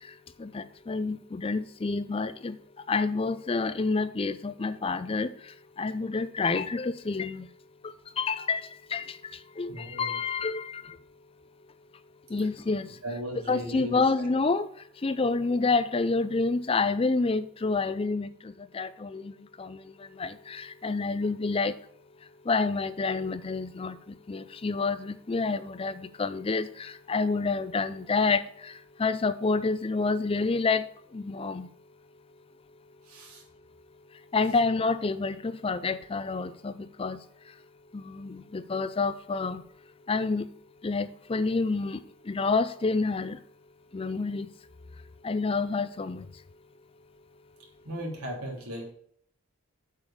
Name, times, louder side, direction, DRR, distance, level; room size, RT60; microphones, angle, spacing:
voice 1, 0.4-2.6 2.9-5.3 5.8-7.5 8.2-9.2 9.6-11.0 12.3-12.9 13.5-14.7 15.0-19.3 19.6-19.8 20.2-21.7 22.5-24.0 24.3-30.9 31.1-31.7 34.3-37.2 37.9-39.6 40.1-40.5 40.8-42.0 42.3-43.4 43.9-44.5 45.2-46.2, left 4 dB, 25° left, 13 dB, 0.4 m, -28 dB
voice 2, 9.7-10.1 13.0-14.0 33.1-33.4 47.8-48.9, equal, 80° right, -2 dB, 3.1 m, -37 dB
8.3 x 4.9 x 7.0 m, 0.63 s
head